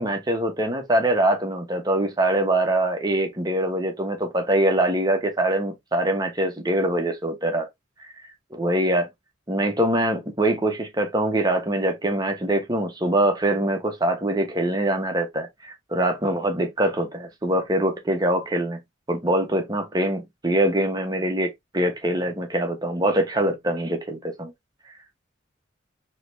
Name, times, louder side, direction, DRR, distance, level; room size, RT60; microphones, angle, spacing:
voice 1, 0.0-7.7 8.5-9.1 9.5-18.8 19.1-24.5, right 1 dB, 20° right, 1.2 m, -23 dB
3.9 x 3.2 x 3.2 m
head